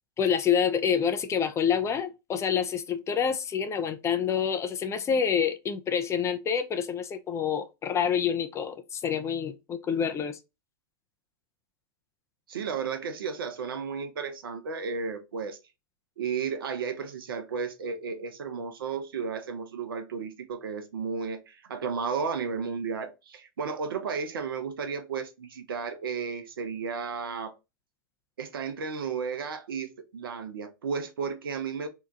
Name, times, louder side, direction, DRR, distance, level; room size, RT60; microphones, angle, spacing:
voice 1, 0.2-10.4, left 7 dB, 25° left, 0.5 m, -27 dB
voice 2, 12.5-15.6 16.2-27.6 28.4-31.9, right 5 dB, 75° right, 0.7 m, -33 dB
2.8 x 2.3 x 3.7 m
hypercardioid pair, 95°, 12 cm